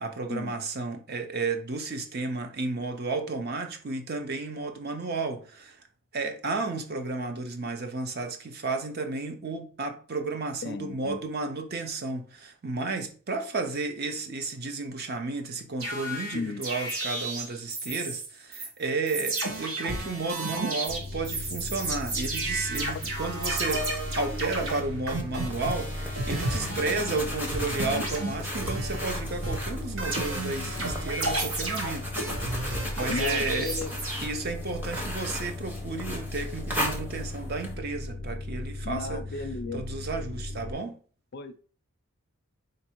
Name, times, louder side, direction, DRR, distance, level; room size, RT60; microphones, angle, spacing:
voice 1, 0.0-5.8 6.1-23.9 24.2-32.1 32.7-33.7 34.2-39.2 39.7-41.0, right 3 dB, 45° right, 0.6 m, -32 dB
voice 2, 10.6-11.2 16.3-16.6 33.1-33.9 38.8-39.8 41.3-41.6, left 3 dB, 45° left, 0.4 m, -34 dB
sound 1, 15.8-18.3 18.5-18.7 19.1-27.3 27.5-29.2 29.4-34.2, right 2 dB, 65° right, 1.0 m, -32 dB
sound 2, 20.9-40.7, left 2 dB, 85° right, 2.0 m, -37 dB
sound 3, 25.3-37.7, equal, 10° right, 0.7 m, -37 dB
4.2 x 2.6 x 4.3 m
head